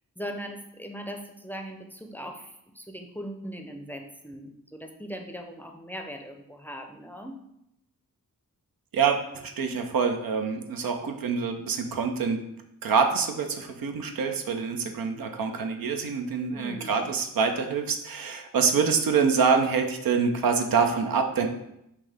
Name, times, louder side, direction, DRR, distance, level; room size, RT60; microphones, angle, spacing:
voice 1, 0.2-7.4 16.5-17.1, equal, 5° left, 4 dB, 0.5 m, -39 dB
voice 2, 8.9-12.5 12.8-21.5, right 5 dB, 80° right, 5 dB, 0.6 m, -26 dB
5.8 x 2.6 x 3.4 m, 0.80 s
cardioid pair, 60°, 34 cm